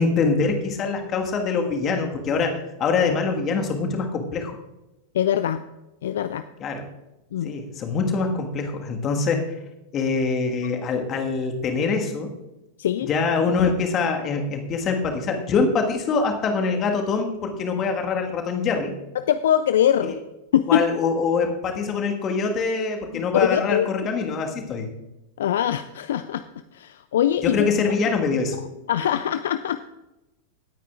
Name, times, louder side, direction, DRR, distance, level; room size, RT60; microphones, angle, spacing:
voice 1, 0.0-4.5 6.6-6.8 7.4-9.4 9.9-12.3 13.0-18.9 20.1-20.2 20.7-24.9 27.4-28.6, left 4 dB, 30° left, 3 dB, 1.6 m, -24 dB
voice 2, 5.1-5.6 6.0-6.4 7.3-7.5 12.8-13.1 19.1-20.2 20.5-20.9 23.1-23.9 25.4-26.4 26.7-27.7 28.9-29.8, left 10 dB, 60° left, 12 dB, 0.3 m, -22 dB
18.0 x 9.1 x 2.4 m, 0.97 s
figure-of-eight pair, 90°, 0 cm